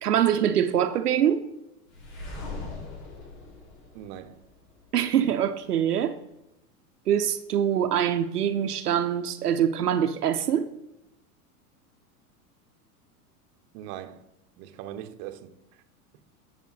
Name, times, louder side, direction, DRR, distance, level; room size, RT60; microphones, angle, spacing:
voice 1, 0.0-1.4 4.9-6.1 7.1-10.6, right 9 dB, 85° right, 0.8 m, -24 dB
sound 1, 1.9-4.9, left 3 dB, 60° left, 3.6 m, -40 dB
voice 2, 3.9-4.4 13.7-14.2 14.6-15.5 16.1-16.2, right 11 dB, 45° right, 0.9 m, -40 dB
12.5 x 6.7 x 4.0 m
hypercardioid pair, 100°, 46 cm